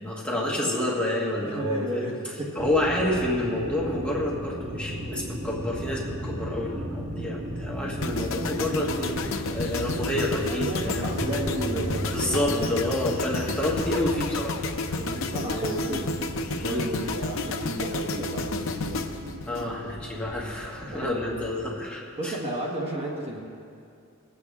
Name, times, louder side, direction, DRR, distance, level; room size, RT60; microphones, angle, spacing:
voice 1, 0.0-2.1 2.5-11.1 12.1-14.6 15.8-16.0 16.6-17.1 19.5-22.4, left 1 dB, 5° left, -4 dB, 1.3 m, -29 dB
voice 2, 1.4-2.6 10.6-12.9 14.9-16.1 16.6-19.0 20.9-21.4 22.2-23.4, right 1 dB, 30° right, -3 dB, 1.2 m, -33 dB
sound 1, 2.6-21.8, right 1 dB, 55° right, 1.2 m, -36 dB
sound 2, 8.0-20.2 20.5-20.8, left 3 dB, 70° left, 0.6 m, -32 dB
sound 3, 11.2-15.3, equal, 90° right, 2.9 m, -38 dB
19.5 x 8.2 x 3.6 m, 2.4 s
head